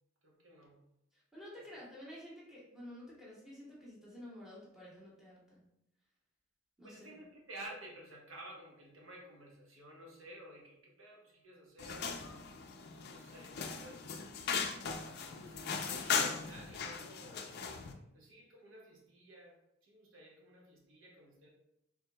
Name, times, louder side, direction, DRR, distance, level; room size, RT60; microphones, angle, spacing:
voice 1, 0.2-0.9 6.8-12.3 13.0-14.1 15.3-21.5, right 1 dB, 65° right, -2 dB, 0.9 m, -53 dB
voice 2, 1.1-5.6 6.8-7.1, left 1 dB, ahead, -6 dB, 1.2 m, -51 dB
sound 1, 11.8-17.9, left 6 dB, 50° left, 0.4 m, -38 dB
4.6 x 3.4 x 2.2 m, 0.81 s
head